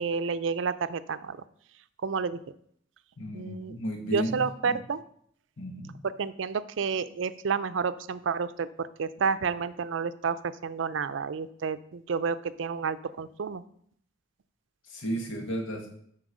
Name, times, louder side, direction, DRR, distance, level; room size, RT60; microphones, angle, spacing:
voice 1, 0.0-1.4 2.0-2.4 3.3-3.8 4.1-5.0 6.2-13.6, right 5 dB, 70° right, 14 dB, 0.5 m, -30 dB
voice 2, 3.2-4.8 5.6-5.9 14.8-15.9, right 1 dB, 85° left, 2 dB, 1.5 m, -34 dB
7.8 x 4.6 x 6.1 m, 0.65 s
head